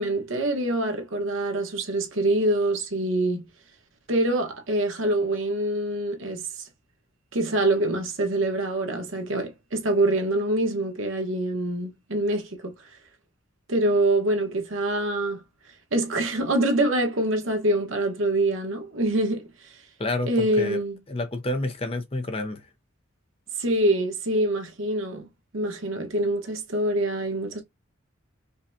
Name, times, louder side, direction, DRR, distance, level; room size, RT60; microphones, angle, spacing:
voice 1, 0.0-3.4 4.1-6.4 7.3-12.7 13.7-15.4 15.9-19.5 20.3-21.0 23.6-25.3 25.5-27.6, right 1 dB, 75° right, 1.1 m, -25 dB
voice 2, 20.0-20.8 21.1-22.7, left 2 dB, 25° left, 0.5 m, -29 dB
5.1 x 2.3 x 2.6 m
head